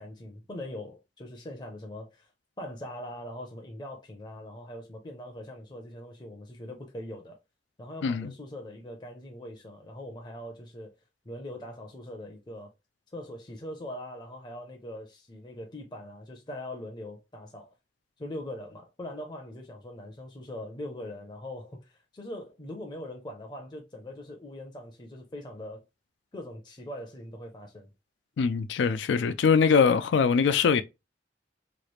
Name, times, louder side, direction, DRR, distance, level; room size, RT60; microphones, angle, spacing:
voice 1, 0.0-2.3 2.6-7.4 7.8-10.9 11.2-12.7 13.1-17.7 18.2-25.8 26.3-27.9, left 1 dB, 25° left, 0.5 m, -41 dB
voice 2, 8.0-8.3 28.4-30.8, left 6 dB, 85° left, 0.4 m, -22 dB
3.0 x 2.4 x 3.0 m
head